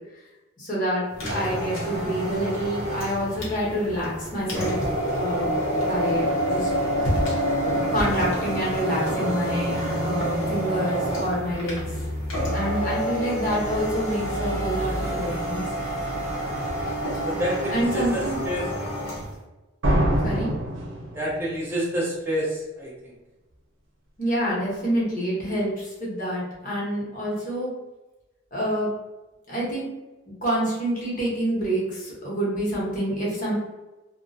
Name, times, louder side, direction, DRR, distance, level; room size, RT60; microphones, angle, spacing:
voice 1, 0.6-1.0 1.3-4.8 5.1-5.5 5.8-6.7 7.6-11.8 12.4-15.6 16.8-17.2 17.7-18.4 20.2-20.5 24.2-27.7 28.5-28.9 29.5-29.9 30.3-33.5, equal, 40° left, -6 dB, 0.9 m, -27 dB
sound 1, 1.1-19.3, equal, 80° left, 0.8 m, -27 dB
voice 2, 16.4-16.9 17.2-18.9 21.1-23.1, equal, 10° right, -6 dB, 0.5 m, -29 dB
sound 2, 19.8-21.6, right 1 dB, 70° right, 0.6 m, -24 dB
2.3 x 2.2 x 2.5 m, 1.1 s
head